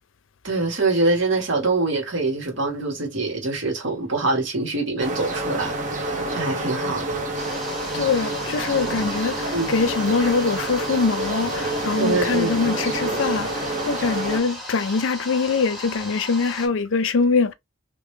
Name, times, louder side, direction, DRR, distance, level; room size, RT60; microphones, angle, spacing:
voice 1, 0.4-5.7 6.0-7.2 7.9-8.1 9.5-9.7 12.0-12.8, right 3 dB, 70° right, 1.6 m, -24 dB
sound 1, 5.0-14.4, right 2 dB, 40° right, 1.0 m, -28 dB
sound 2, 7.4-16.7, left 1 dB, ahead, 1.5 m, -36 dB
voice 2, 7.9-17.5, left 4 dB, 80° left, 0.5 m, -23 dB
3.2 x 2.7 x 3.1 m
head